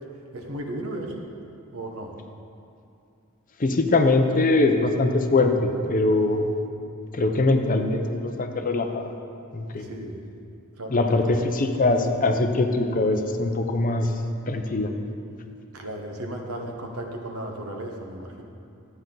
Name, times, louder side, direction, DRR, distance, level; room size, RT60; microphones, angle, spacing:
voice 1, 0.3-1.2 1.7-2.1 9.8-10.2 10.8-11.3 15.7-18.4, right 1 dB, 75° right, 2 dB, 1.2 m, -35 dB
voice 2, 3.6-6.5 7.1-9.1 9.5-9.9 10.9-14.1 14.5-14.9, left 2 dB, 40° left, 5 dB, 0.7 m, -22 dB
12.5 x 9.0 x 3.9 m, 2.6 s
head